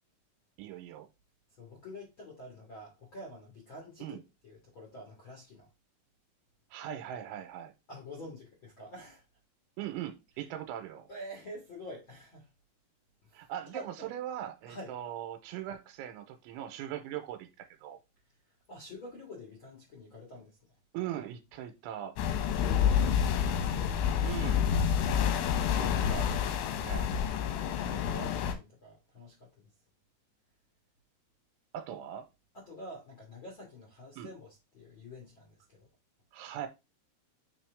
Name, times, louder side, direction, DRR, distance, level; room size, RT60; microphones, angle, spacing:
voice 1, 0.6-1.1 4.0-4.2 6.7-7.7 9.8-11.1 13.3-18.0 20.9-22.2 24.2-24.6 25.7-27.1 31.7-32.2 34.2-34.3 36.3-36.7, right 11 dB, 85° right, 3.1 m, -40 dB
voice 2, 1.6-4.2 4.4-5.7 7.9-9.2 11.1-12.5 13.2-13.4 13.7-14.1 14.7-14.9 18.7-20.6 22.5-24.3 27.3-29.7 32.5-35.9, left 1 dB, 60° left, 1.3 m, -47 dB
sound 1, 22.2-28.5, left 8 dB, 90° left, 3.5 m, -28 dB
8.7 x 3.1 x 3.4 m
omnidirectional pair, 5.6 m